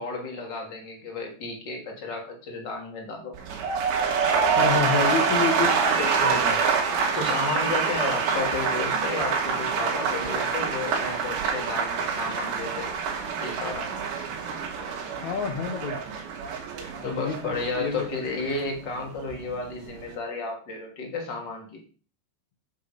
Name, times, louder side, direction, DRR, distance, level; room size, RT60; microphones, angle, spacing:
voice 1, 0.0-3.4 7.1-12.9 13.4-13.9 17.0-21.8, left 3 dB, 30° left, 1 dB, 2.6 m, -32 dB
sound 1, 3.3-19.4 19.7-20.1, right 5 dB, 85° right, 4.3 m, -26 dB
voice 2, 4.6-6.6 15.2-16.0 17.0-18.6, left 5 dB, 70° left, 3 dB, 1.8 m, -29 dB
8.8 x 7.5 x 5.1 m, 0.39 s
omnidirectional pair, 4.9 m